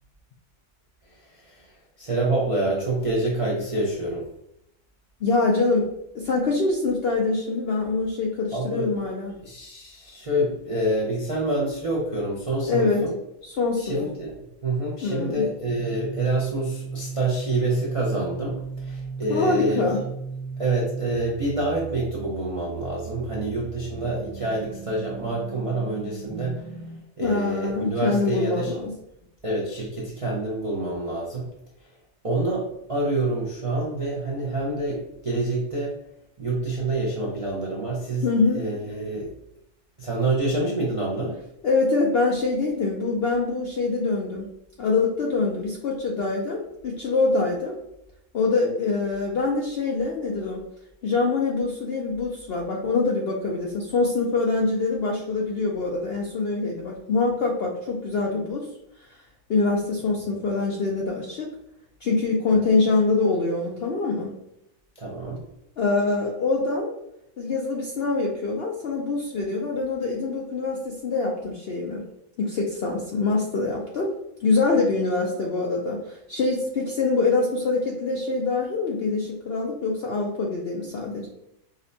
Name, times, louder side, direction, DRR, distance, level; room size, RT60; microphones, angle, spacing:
voice 1, 1.3-1.7 2.0-4.3 8.5-8.9 9.4-13.1 13.8-14.3 14.6-19.8 20.6-26.7 27.2-28.7 29.4-31.5 32.2-36.0 36.4-39.3 40.0-41.4 62.5-62.6 65.0-65.4, right 2 dB, 50° right, -5 dB, 0.4 m, -27 dB
voice 2, 5.2-9.3 12.7-13.0 13.4-14.0 15.0-15.5 19.3-20.0 27.2-28.9 38.2-38.6 41.6-44.5 44.8-47.8 48.3-50.6 51.0-58.7 59.5-61.5 62.0-64.3 65.8-66.9 67.4-72.0 72.4-74.1 74.4-81.3, left 3 dB, 70° left, -1 dB, 0.6 m, -24 dB
sound 1, 15.7-27.0, right 5 dB, 20° left, 0.4 m, -36 dB
5.1 x 2.1 x 2.6 m, 0.82 s
omnidirectional pair, 1.6 m